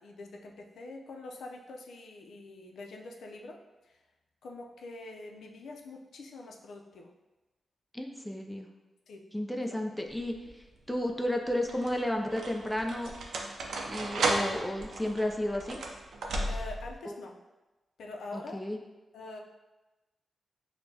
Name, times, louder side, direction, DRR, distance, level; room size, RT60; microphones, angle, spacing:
voice 1, 0.0-3.6 3.8-4.0 4.4-7.1 9.1-9.3 9.6-10.0 16.5-17.4 18.0-18.7 19.1-19.4, left 2 dB, 85° left, 1 dB, 0.4 m, -45 dB
voice 2, 7.9-8.7 9.3-13.1 13.9-15.8 17.1-17.2 18.3-18.8, left 1 dB, 5° left, 2 dB, 0.3 m, -33 dB
sound 1, 10.1-10.6 11.4-16.9, right 2 dB, 85° right, 0.5 m, -34 dB
6.4 x 2.1 x 2.7 m, 1.1 s
wide cardioid pair, 145°, 0 cm